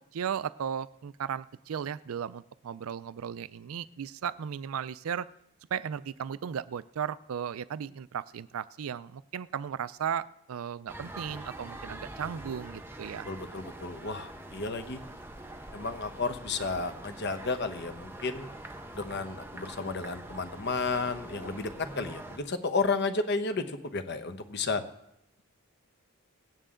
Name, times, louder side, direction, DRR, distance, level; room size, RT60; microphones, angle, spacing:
voice 1, 0.0-5.3 5.7-13.3, right 8 dB, 75° right, 17 dB, 0.4 m, -36 dB
sound 1, 10.9-22.4, right 1 dB, 10° right, 0.9 m, -44 dB
voice 2, 13.3-15.0 15.7-18.5 18.9-24.8, left 3 dB, 50° left, 9 dB, 1.0 m, -32 dB
18.5 x 9.0 x 3.8 m, 0.80 s
head